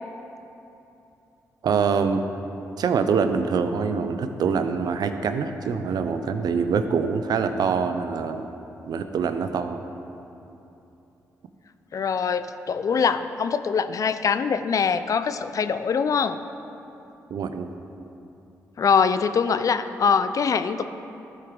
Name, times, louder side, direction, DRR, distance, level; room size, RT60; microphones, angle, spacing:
voice 1, 1.6-2.2 2.8-8.5 8.9-9.8 17.3-17.7, right 5 dB, 65° right, 9 dB, 0.5 m, -24 dB
voice 2, 11.9-16.4 18.8-20.8, left 6 dB, 50° left, 11 dB, 0.4 m, -23 dB
13.0 x 4.5 x 3.7 m, 2.9 s
supercardioid pair, 45°, 7 cm